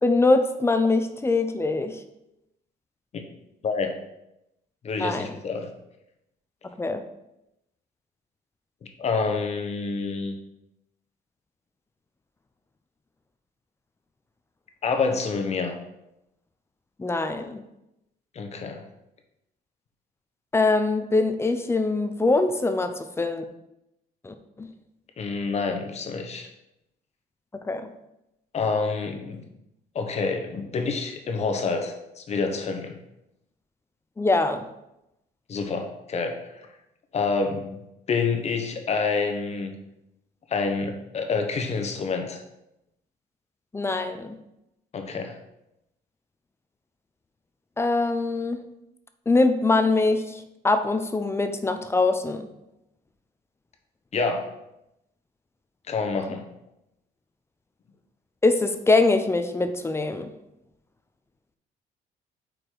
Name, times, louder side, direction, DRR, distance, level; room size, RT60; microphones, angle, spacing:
voice 1, 0.0-2.0 5.0-5.3 6.6-7.0 17.0-17.6 20.5-23.4 24.2-24.7 27.6-27.9 34.2-34.7 43.7-44.4 47.8-48.6 49.3-52.5 58.4-60.3, left 3 dB, 15° left, 8 dB, 0.5 m, -23 dB
voice 2, 4.8-5.7 9.0-10.4 14.8-15.7 18.3-18.8 25.2-26.5 28.5-29.4 29.9-33.0 35.5-36.7 37.1-37.8 38.1-39.7 40.5-42.4 44.9-45.3 54.1-54.5 55.9-56.4, left 4 dB, 40° left, 5 dB, 0.9 m, -27 dB
5.0 x 4.1 x 4.5 m, 0.87 s
cardioid pair, 110°, 17 cm